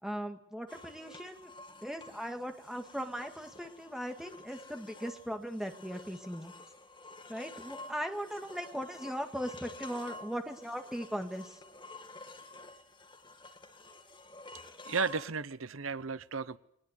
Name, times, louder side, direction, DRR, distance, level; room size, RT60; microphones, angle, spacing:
voice 1, 0.0-1.5 1.8-6.5 7.3-11.6, equal, ahead, 2.0 m, -39 dB
sound 1, 0.7-15.3, left 2 dB, 25° left, 2.2 m, -51 dB
voice 2, 14.8-16.6, right 5 dB, 80° right, 0.9 m, -34 dB
21.5 x 20.5 x 8.2 m
head